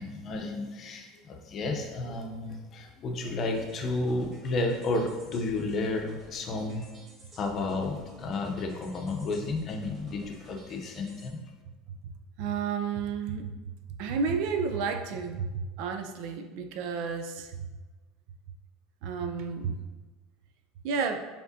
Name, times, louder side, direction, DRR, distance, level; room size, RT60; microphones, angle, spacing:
voice 1, 0.0-6.9 7.4-11.4, left 2 dB, 40° left, 3 dB, 0.7 m, -32 dB
sound 1, 3.4-11.3, equal, 35° right, 1.4 m, -52 dB
voice 2, 12.4-13.5 14.0-17.6 19.0-19.8 20.8-21.2, right 5 dB, 70° right, 6 dB, 0.4 m, -31 dB
4.8 x 3.5 x 2.7 m, 1.2 s
supercardioid pair, 110°, 0 cm